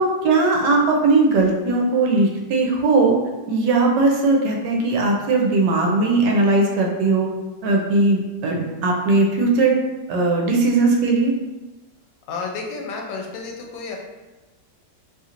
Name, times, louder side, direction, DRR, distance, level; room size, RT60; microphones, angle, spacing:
voice 1, 0.0-3.2 3.5-7.3 7.6-9.8 10.1-11.3, right 3 dB, 75° right, 0 dB, 1.2 m, -18 dB
voice 2, 12.3-14.0, left 4 dB, 80° left, 1 dB, 1.2 m, -31 dB
3.0 x 2.8 x 2.5 m, 1.1 s
omnidirectional pair, 1.9 m